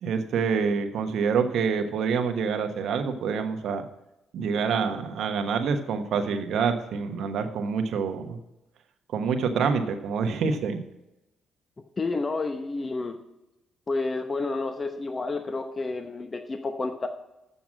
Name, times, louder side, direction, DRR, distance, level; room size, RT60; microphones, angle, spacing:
voice 1, 0.0-3.9 4.3-8.4 9.1-10.8, right 5 dB, 70° right, 6 dB, 1.2 m, -26 dB
voice 2, 12.0-13.2 13.9-17.1, left 3 dB, 30° left, 7 dB, 0.8 m, -30 dB
7.6 x 6.9 x 7.4 m, 0.94 s
cardioid pair, 90°, 0 cm